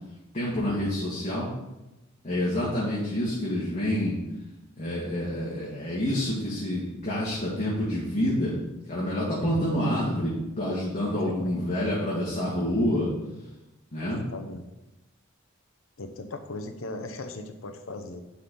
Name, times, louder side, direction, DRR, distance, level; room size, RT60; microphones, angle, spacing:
voice 1, 0.3-1.5 2.2-4.2 4.8-8.5 8.9-13.1 13.9-14.2, left 1 dB, 35° left, -7 dB, 2.0 m, -28 dB
voice 2, 11.1-11.5 14.0-14.6 16.0-18.2, left 2 dB, 75° left, 7 dB, 0.8 m, -38 dB
11.5 x 4.3 x 3.9 m, 0.96 s
head